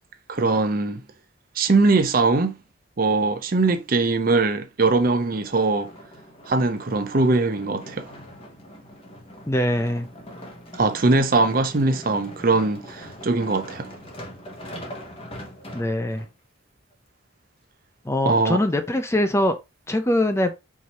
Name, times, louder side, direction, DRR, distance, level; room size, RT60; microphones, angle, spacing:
voice 1, 0.3-1.0 1.6-2.6 3.0-5.9 6.5-8.1 10.8-13.9 18.2-18.6, right 3 dB, 45° right, 0.6 m, -21 dB
sound 1, 5.3-16.3 16.9-17.0, equal, 30° left, 1.1 m, -42 dB
voice 2, 9.5-10.1 15.7-16.3 18.1-19.5 19.9-20.5, left 1 dB, 15° left, 0.5 m, -22 dB
4.7 x 2.8 x 4.1 m
head